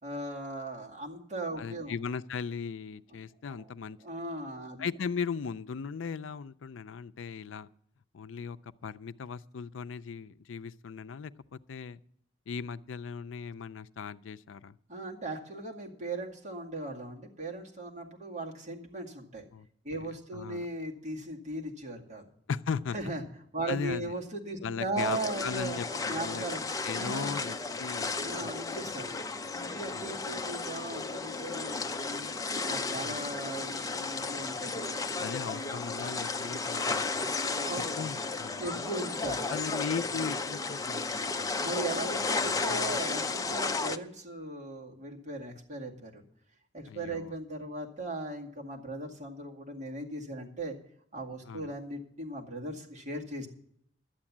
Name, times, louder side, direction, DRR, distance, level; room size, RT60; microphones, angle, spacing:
voice 1, 0.0-1.9 3.5-3.7 4.0-4.9 14.9-19.5 19.8-22.3 22.9-23.2 23.5-26.6 27.0-27.4 28.2-29.1 29.5-32.3 32.7-35.0 37.5-37.9 38.6-39.5 41.6-46.2 46.7-50.8 51.1-53.5, right 2 dB, 40° right, -1 dB, 2.1 m, -38 dB
voice 2, 1.6-4.0 4.8-7.7 8.1-12.0 12.5-14.8 19.5-19.7 19.9-20.7 22.5-23.0 23.7-24.1 24.6-26.4 26.8-28.5 28.8-29.0 29.9-30.1 33.0-33.3 35.2-37.3 38.0-38.9 39.5-41.7 42.2-43.0 46.9-47.3 51.4-51.7, left 6 dB, 85° left, 15 dB, 0.4 m, -38 dB
sound 1, 25.0-44.0, left 4 dB, 20° left, 0.5 m, -33 dB
11.5 x 8.8 x 7.2 m, 0.70 s
head